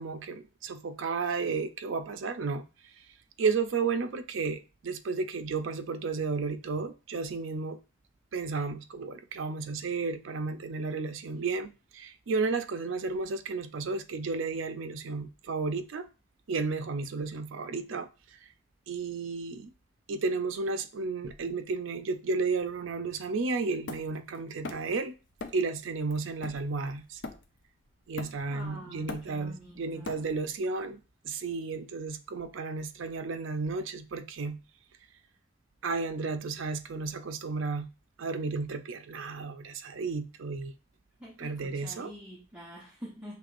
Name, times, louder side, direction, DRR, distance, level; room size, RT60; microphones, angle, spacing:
voice 1, 0.0-2.7 3.4-7.8 8.3-16.1 16.5-18.1 18.9-19.7 20.1-25.1 25.5-27.2 28.1-31.0 31.2-34.6 35.8-37.9 38.2-40.7 41.4-42.1, right 4 dB, 80° right, 0.5 m, -33 dB
Hammer, 23.9-25.0 25.4-25.7 26.1-27.7 28.2-28.6 28.9-30.6, left 3 dB, 65° left, 0.6 m, -42 dB
voice 2, 28.5-30.3 41.2-43.4, equal, 5° right, 0.9 m, -46 dB
6.6 x 3.2 x 2.5 m
head